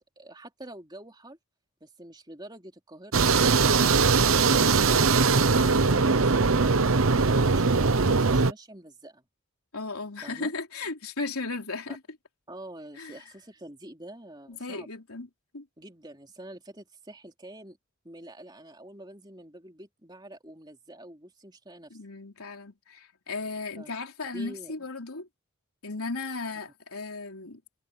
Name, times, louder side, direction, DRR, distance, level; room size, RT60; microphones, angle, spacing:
voice 1, 0.2-1.4 1.8-5.1 5.8-9.3 10.2-10.5 11.9-12.0 12.5-14.9 15.8-17.8 18.0-22.0 23.8-23.9 24.3-24.7, right 1 dB, 20° right, 3.5 m, -46 dB
sound 1, 3.1-8.5, right 4 dB, 70° right, 0.9 m, -21 dB
voice 2, 5.5-5.9 9.7-12.0 13.0-13.2 14.5-15.3 15.5-15.7 21.9-25.3 25.8-27.6, left 3 dB, 80° left, 3.6 m, -36 dB
head